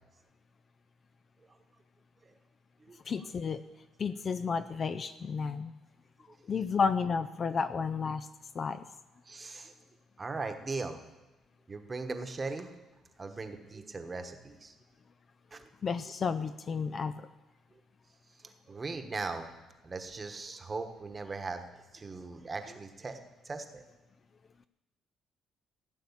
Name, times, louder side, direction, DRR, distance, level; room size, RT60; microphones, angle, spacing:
voice 1, 3.1-3.6 4.0-5.7 6.5-8.3 8.5-8.9 15.8-17.3, left 5 dB, 35° left, 10 dB, 0.4 m, -32 dB
voice 2, 9.2-9.7 10.2-11.0 11.7-12.7 13.2-14.7 15.5-15.7 18.7-19.5 19.8-21.6 21.9-23.8, right 3 dB, 20° right, 7 dB, 1.2 m, -39 dB
16.0 x 9.0 x 7.2 m, 1.1 s
cardioid pair, 150°, 0 cm